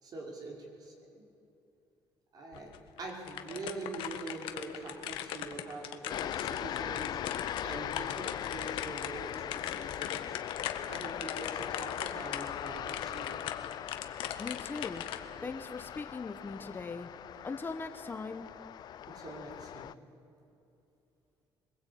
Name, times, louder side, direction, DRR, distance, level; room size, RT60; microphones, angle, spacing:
voice 1, 0.0-1.2 2.3-2.7 3.0-10.4 10.9-13.5 19.1-19.9, right 2 dB, 50° right, -1 dB, 5.6 m, -44 dB
sound 1, 2.5-15.2, left 11 dB, 85° left, 1.4 m, -40 dB
sound 2, 6.1-19.9, left 10 dB, 55° left, 0.5 m, -40 dB
voice 2, 14.4-15.1 15.4-17.1 17.4-18.5, left 4 dB, 25° left, 7 dB, 1.2 m, -40 dB
23.5 x 21.5 x 8.7 m, 2.8 s
cardioid pair, 120°, 9 cm